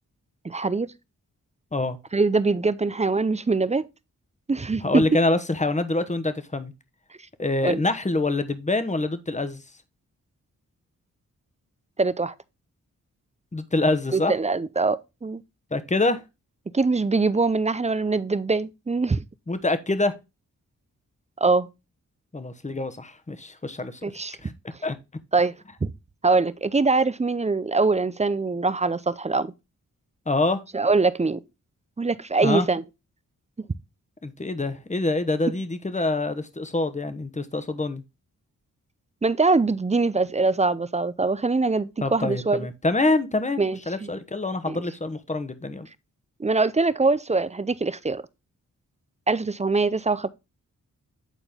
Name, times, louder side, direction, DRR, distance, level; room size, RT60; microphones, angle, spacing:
voice 1, 0.4-0.9 2.1-3.9 4.5-5.0 7.6-7.8 12.0-12.3 14.1-15.4 16.7-19.2 21.4-21.7 24.0-24.5 25.3-25.5 25.8-25.9 26.2-29.5 30.7-31.4 32.0-32.8 39.2-42.6 43.6-44.1 44.7-44.8 46.4-48.2 49.3-50.3, right 3 dB, 20° right, 0.5 m, -23 dB
voice 2, 4.8-6.7 7.4-9.6 13.5-14.3 15.7-16.2 19.5-20.1 22.3-24.0 24.4-24.5 24.8-25.0 30.3-30.6 32.4-32.7 34.2-38.0 42.0-43.6 43.9-45.9, left 2 dB, 20° left, 1.1 m, -25 dB
8.9 x 4.3 x 3.5 m
cardioid pair, 60°, 34 cm